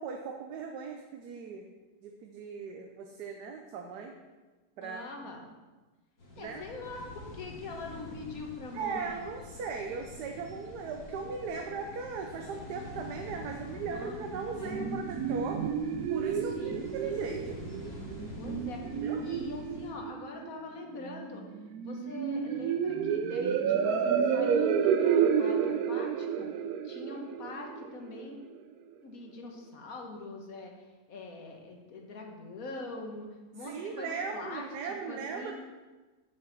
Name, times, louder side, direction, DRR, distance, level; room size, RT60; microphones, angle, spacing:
voice 1, 0.0-1.6 2.0-4.2 4.8-5.0 6.4-6.6 8.7-15.6 16.1-17.6 19.0-19.2 33.6-35.5, right 5 dB, 90° right, 3 dB, 1.3 m, -38 dB
voice 2, 4.8-5.4 6.4-7.1 7.3-9.2 11.5-11.6 13.5-14.2 14.5-14.8 16.5-16.9 18.4-21.4 21.8-26.5 26.8-28.4 29.0-30.7 31.1-33.3 33.5-35.5, left 3 dB, 60° left, 2 dB, 1.7 m, -43 dB
sound 1, 6.2-19.9, left 2 dB, 90° left, 2.6 m, -46 dB
sound 2, 14.3-28.3, right 7 dB, 75° right, 1.1 m, -30 dB
7.3 x 6.1 x 5.9 m, 1.2 s
omnidirectional pair, 1.7 m